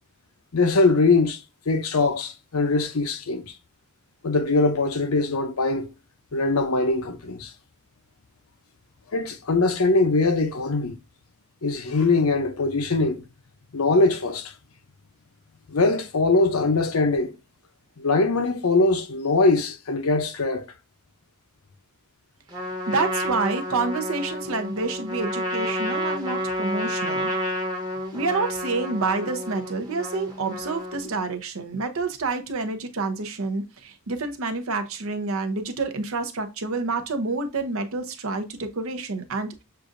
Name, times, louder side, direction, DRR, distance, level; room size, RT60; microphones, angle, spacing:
voice 1, 0.5-3.5 4.2-5.9 6.3-7.5 9.1-11.0 11.6-13.2 13.7-14.5 15.7-17.3 18.0-20.6, left 3 dB, 80° left, 0.7 m, -22 dB
Trumpet, 22.5-31.2, equal, 20° right, 1.0 m, -30 dB
voice 2, 22.9-27.3 28.1-39.5, right 3 dB, 70° right, 0.8 m, -28 dB
6.5 x 2.5 x 2.5 m
head